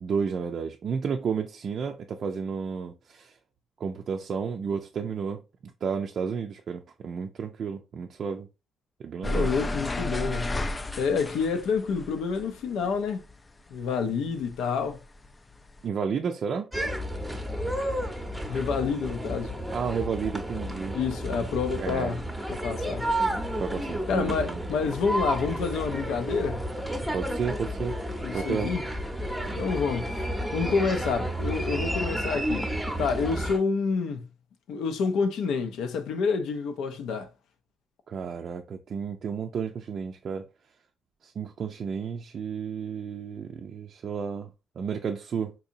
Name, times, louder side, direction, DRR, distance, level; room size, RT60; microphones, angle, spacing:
voice 1, 0.0-3.4 3.8-8.5 9.0-9.5 15.8-16.7 19.7-21.0 21.8-22.2 23.6-24.6 27.1-28.0 28.3-28.7 38.1-40.5 41.2-44.5 44.8-45.5, right 6 dB, 55° right, 0.4 m, -32 dB
voice 2, 9.2-10.6 11.0-13.2 13.7-15.0 18.5-19.6 20.9-23.1 24.1-26.7 28.2-28.8 29.6-30.1 30.5-32.7 33.0-34.3 34.7-37.3, left 5 dB, 85° left, 0.6 m, -28 dB
sound 1, 9.2-13.9 14.2-15.8, left 1 dB, 25° left, 0.3 m, -33 dB
sound 2, 16.7-33.6, right 1 dB, 5° right, 0.7 m, -31 dB
3.9 x 2.7 x 2.6 m
cardioid pair, 90°, 0 cm